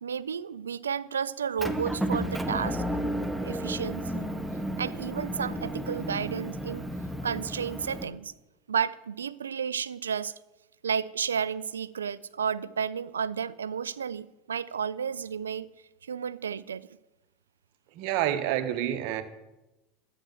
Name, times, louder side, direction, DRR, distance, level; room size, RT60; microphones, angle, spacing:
voice 1, 0.0-2.8 3.4-4.3 4.8-6.9 7.2-8.3 8.7-10.3 10.8-15.7 16.0-16.9, right 7 dB, 85° right, 0.4 m, -32 dB
Motor vehicle (road) / Engine, 1.6-8.0, right 1 dB, 5° right, 1.5 m, -32 dB
voice 2, 17.9-19.2, right 11 dB, 60° right, 1.3 m, -28 dB
11.5 x 8.9 x 7.7 m
hypercardioid pair, 80°, 0 cm